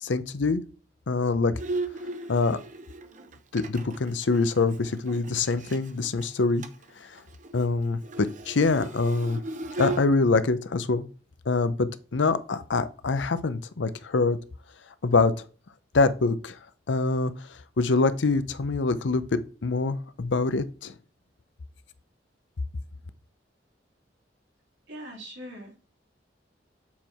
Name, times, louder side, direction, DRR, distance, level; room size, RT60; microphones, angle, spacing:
voice 1, 0.0-0.6 1.1-1.6 2.3-2.6 3.5-6.6 7.0-7.2 7.5-9.4 9.8-11.0 11.5-14.4 15.0-15.3 15.9-16.6 16.9-17.3 17.8-20.9, left 3 dB, 85° left, 0.6 m, -25 dB
Bowed string instrument, 1.6-5.9 6.2-6.3 6.6-6.9 7.2-10.0, right 2 dB, 45° right, 0.7 m, -36 dB
voice 2, 24.9-25.8, equal, 90° right, 3.5 m, -41 dB
7.5 x 4.6 x 4.3 m
head